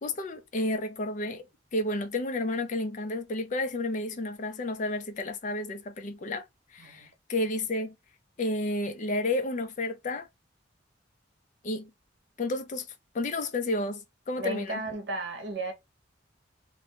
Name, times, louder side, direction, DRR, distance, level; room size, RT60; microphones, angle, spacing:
voice 1, 0.0-6.4 6.7-8.0 8.4-10.3 11.6-11.9 12.4-12.9 13.1-14.9, left 2 dB, 40° left, 0.4 m, -31 dB
voice 2, 6.8-7.1 14.4-15.7, right 2 dB, 70° right, 0.8 m, -34 dB
2.6 x 2.2 x 2.8 m
head